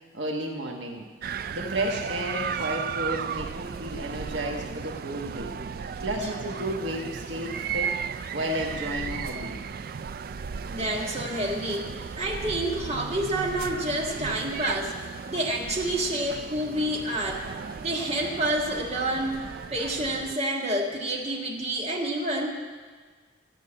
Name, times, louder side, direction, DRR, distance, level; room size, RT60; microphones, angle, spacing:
voice 1, 0.1-1.1 1.5-5.6 6.0-7.9 8.3-9.6, right 1 dB, 75° right, 1 dB, 1.3 m, -32 dB
sound 1, 1.2-20.4, right 6 dB, 50° right, 0.3 m, -35 dB
voice 2, 10.7-14.9 15.3-17.4 17.8-19.4 19.7-22.5, right 1 dB, 35° right, -2 dB, 1.6 m, -28 dB
13.5 x 5.5 x 8.7 m, 1.5 s
head